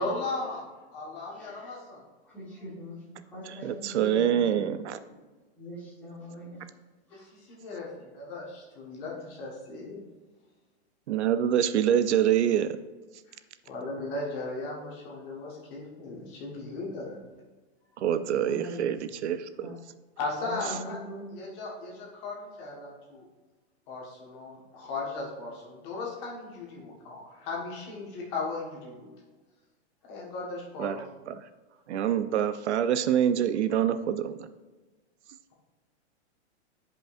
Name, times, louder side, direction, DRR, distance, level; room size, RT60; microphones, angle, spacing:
voice 1, 0.0-0.6 0.9-2.0 7.1-10.0 13.3-13.4 13.6-17.1 20.2-21.0 21.3-23.2 23.9-29.1 30.0-31.0, left 3 dB, 25° left, -3 dB, 1.4 m, -37 dB
voice 2, 1.3-1.8 2.2-4.7 5.1-5.2 5.6-6.6 7.1-7.3 18.1-18.9 19.6-19.8 20.4-21.3, equal, 5° left, -8 dB, 1.4 m, -42 dB
voice 3, 3.5-5.0 11.1-12.8 18.0-19.8 30.8-31.0 31.3-31.4 31.9-34.5, right 9 dB, 75° right, 12 dB, 0.6 m, -26 dB
11.0 x 5.2 x 2.5 m, 1.3 s
supercardioid pair, 175°, 34 cm